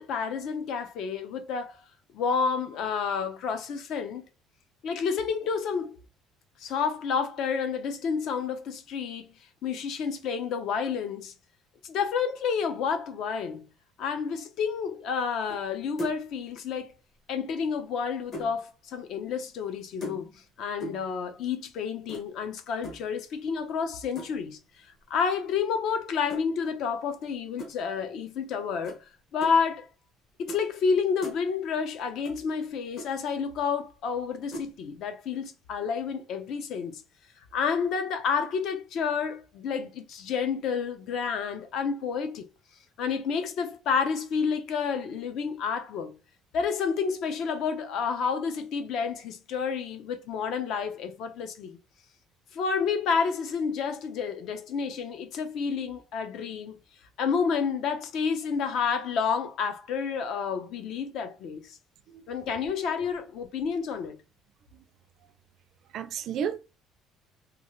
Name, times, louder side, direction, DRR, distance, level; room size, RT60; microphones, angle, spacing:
voice 1, 0.0-1.8 2.1-4.2 4.8-6.0 6.6-9.3 9.6-11.3 11.8-13.7 14.0-16.9 17.3-20.3 20.6-24.6 25.1-29.9 30.4-37.0 37.5-42.4 43.0-46.1 46.5-51.8 52.5-56.8 57.2-61.8 62.3-64.2, left 6 dB, 55° left, 0.7 m, -30 dB
sound 1, 15.5-15.7 16.0-16.3 17.6-18.6 20.0-20.5 20.8-21.1 22.1-22.3 22.8-23.1 24.2-24.5 26.3-26.4 27.6-27.7 28.8-29.0 29.4-29.5 30.5-30.6 30.9-31.4 32.2-32.4 32.6-32.7 33.0-33.1 34.5-34.7, right 1 dB, 35° left, 1.1 m, -39 dB
voice 2, 65.9-66.6, right 8 dB, 50° right, 0.4 m, -33 dB
3.0 x 2.4 x 3.0 m
cardioid pair, 165°, 0 cm